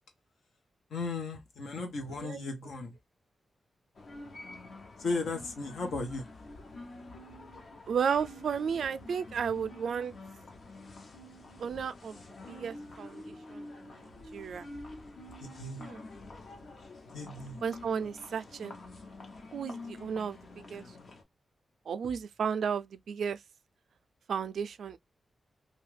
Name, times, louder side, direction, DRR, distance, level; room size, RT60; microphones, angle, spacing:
voice 1, 0.9-2.9 5.0-6.3 15.4-15.9 17.1-17.6, left 3 dB, 90° left, 1.0 m, -36 dB
sound 1, 3.9-21.2, left 2 dB, 55° left, 0.7 m, -48 dB
voice 2, 7.9-10.1 11.6-12.2 12.5-14.7 15.8-16.0 17.6-18.7 19.5-20.4 20.7-20.8 21.9-23.4 24.3-25.0, right 7 dB, 80° right, 0.3 m, -33 dB
2.6 x 2.3 x 3.2 m
wide cardioid pair, 125°, 0 cm